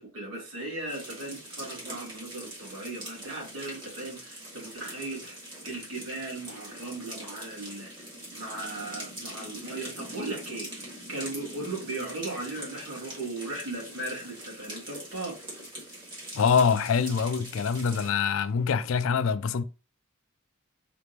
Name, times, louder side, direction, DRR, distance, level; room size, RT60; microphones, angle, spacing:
voice 1, 0.0-15.4, right 2 dB, 75° right, 2.4 m, -37 dB
sound 1, 0.9-18.1, right 1 dB, 20° right, 1.8 m, -43 dB
voice 2, 16.3-19.6, left 6 dB, 70° left, 0.4 m, -24 dB
4.2 x 3.4 x 2.9 m
head